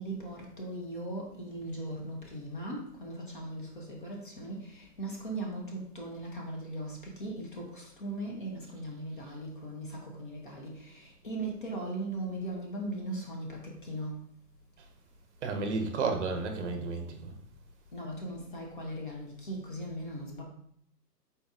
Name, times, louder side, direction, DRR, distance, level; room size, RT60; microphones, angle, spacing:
voice 1, 0.0-14.2 17.9-20.4, right 1 dB, 35° left, -1 dB, 0.6 m, -39 dB
voice 2, 15.4-17.3, right 4 dB, 45° right, 5 dB, 0.7 m, -32 dB
4.0 x 3.8 x 2.4 m, 0.69 s
hypercardioid pair, 160°, 49 cm